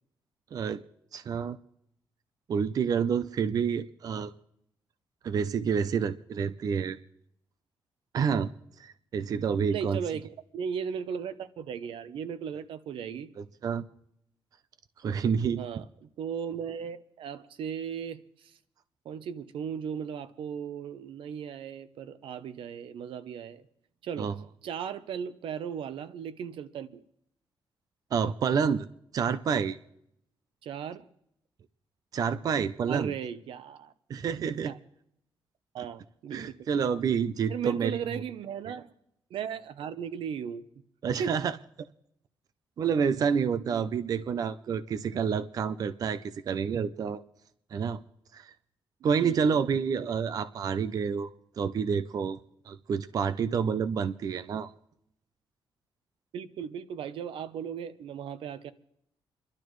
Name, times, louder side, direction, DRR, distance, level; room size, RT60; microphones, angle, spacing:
voice 1, 0.5-0.8 1.1-1.6 2.5-4.3 5.2-7.0 8.1-8.5 8.8-10.0 13.4-13.9 15.0-15.6 24.2-24.3 28.1-28.9 29.1-29.8 32.1-33.1 34.1-34.7 35.8-35.9 36.3-38.0 41.0-41.6 42.8-47.2 47.7-48.0 48.3-48.5 49.0-51.3 51.6-52.4 52.7-54.7, right 6 dB, 45° right, 0.5 m, -28 dB
voice 2, 9.7-13.3 15.6-15.8 16.2-18.2 19.0-23.6 24.0-24.3 24.6-27.0 30.6-31.1 32.9-33.9 34.4-34.8 35.7-36.5 37.5-38.9 39.3-40.6 41.0-41.3 49.2-49.6 49.9-50.1 56.3-58.7, right 7 dB, 85° right, 0.8 m, -36 dB
29.5 x 12.0 x 3.1 m
wide cardioid pair, 170°, 9 cm